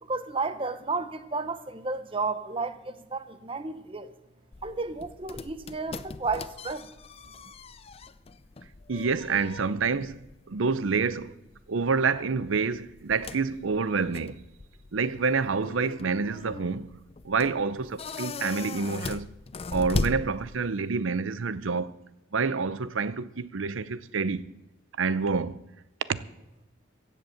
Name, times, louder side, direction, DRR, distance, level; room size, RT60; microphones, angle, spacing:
voice 1, 0.0-4.1 4.6-6.9, right 3 dB, 25° right, 0.9 m, -32 dB
sound 1, 4.5-20.9, left 3 dB, 30° left, 0.5 m, -39 dB
voice 2, 8.9-11.4 11.7-14.4 14.9-16.9 17.2-19.3 19.7-21.9 22.3-24.5 25.0-25.6 26.1-26.2, right 4 dB, 85° right, 0.7 m, -28 dB
15.5 x 8.0 x 7.8 m
head